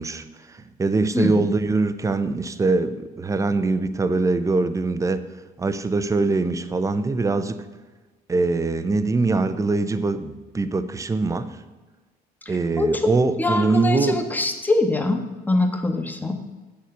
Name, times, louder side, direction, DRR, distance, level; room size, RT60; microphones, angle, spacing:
voice 1, 0.0-5.2 5.6-7.7 8.3-11.6 12.5-14.3, right 3 dB, 20° right, 11 dB, 0.7 m, -23 dB
voice 2, 13.4-15.2 15.5-16.4, left 2 dB, 10° left, 5 dB, 1.4 m, -23 dB
8.2 x 6.7 x 7.9 m, 1.2 s
cardioid pair, 110°, 17 cm